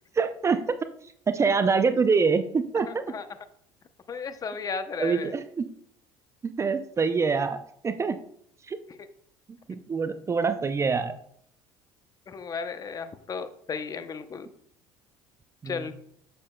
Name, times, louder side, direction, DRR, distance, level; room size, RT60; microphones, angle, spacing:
voice 1, 0.1-0.8 1.0-3.0 5.0-5.7 6.4-8.2 8.6-8.8 9.5-11.2 15.6-15.9, right 5 dB, 25° right, 11 dB, 0.5 m, -25 dB
voice 2, 4.1-5.3 12.3-14.5 15.6-15.9, left 5 dB, 35° left, 11 dB, 0.7 m, -34 dB
7.3 x 6.6 x 2.2 m, 0.66 s
supercardioid pair, 80°, 11 cm